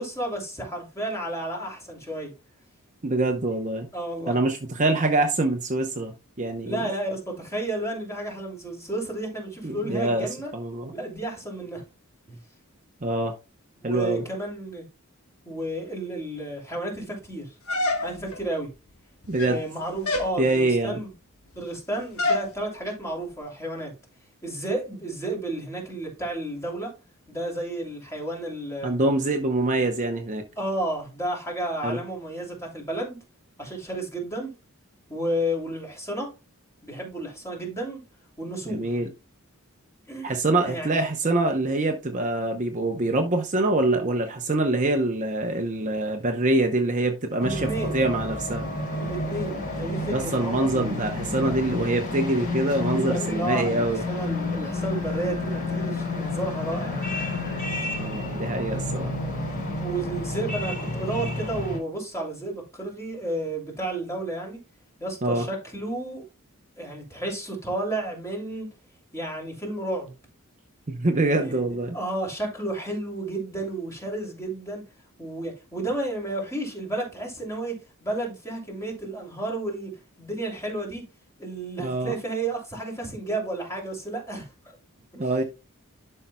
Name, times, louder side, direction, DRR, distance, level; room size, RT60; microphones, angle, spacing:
voice 1, 0.0-2.3 3.9-4.3 6.6-10.5 10.9-11.8 12.3-12.4 13.8-14.8 15.4-17.5 18.0-18.7 19.4-21.1 21.6-23.9 24.4-26.9 27.3-28.9 30.6-33.2 33.6-34.5 35.1-36.3 36.8-38.0 38.4-38.9 40.1-40.9 47.4-48.0 48.9-51.1 52.5-57.1 59.7-64.6 65.0-66.2 66.8-68.7 69.1-70.1 71.3-71.6 71.9-74.8 75.2-79.9 80.2-81.0 81.4-84.7 85.1-85.3, right 1 dB, 15° left, 2.8 m, -32 dB
voice 2, 3.0-3.9 4.3-6.9 9.6-10.3 10.5-10.9 13.0-13.3 13.8-14.2 19.3-19.6 20.4-21.0 28.8-30.4 31.8-32.0 38.7-39.1 40.2-48.7 50.1-54.0 58.0-59.1 65.2-65.5 70.9-72.0 81.8-82.1 85.2-85.4, right 2 dB, 35° right, 0.8 m, -25 dB
sound 1, 17.7-18.4 19.2-19.7 20.0-20.4 22.2-22.5, left 2 dB, 80° left, 1.4 m, -26 dB
sound 2, 47.4-61.8, left 2 dB, 45° left, 4.6 m, -30 dB
11.5 x 5.5 x 2.2 m
head